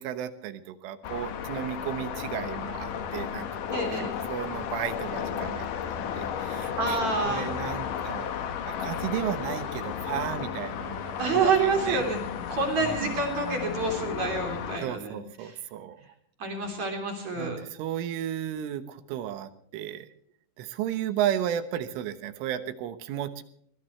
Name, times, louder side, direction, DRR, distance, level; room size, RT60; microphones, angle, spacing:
voice 1, 0.0-8.3 8.7-12.1 12.8-13.2 14.8-16.0 17.4-20.1 20.6-23.4, right 11 dB, 80° right, 11 dB, 3.6 m, -34 dB
sound 1, 1.0-14.8, left 8 dB, 65° left, 2.2 m, -33 dB
voice 2, 3.7-4.1 6.8-7.5 11.2-12.2 12.5-15.5 16.4-17.6, right 4 dB, 40° right, 3 dB, 4.3 m, -28 dB
22.5 x 19.5 x 3.2 m, 0.66 s
omnidirectional pair, 5.8 m